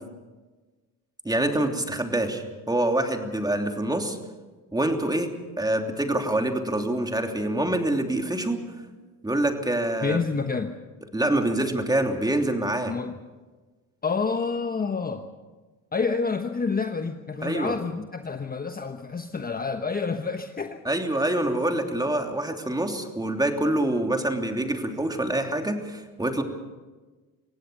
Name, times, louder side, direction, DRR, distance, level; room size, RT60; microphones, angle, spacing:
voice 1, 1.2-4.2 4.7-5.3 5.6-8.6 9.2-10.2 11.1-12.9 17.4-17.7 20.8-26.4, right 1 dB, 10° right, 4 dB, 3.1 m, -26 dB
voice 2, 10.0-10.8 12.9-13.1 14.0-15.2 15.9-20.8, left 4 dB, 20° left, 6 dB, 1.3 m, -28 dB
25.0 x 17.0 x 6.8 m, 1.3 s
supercardioid pair, 80°, 41 cm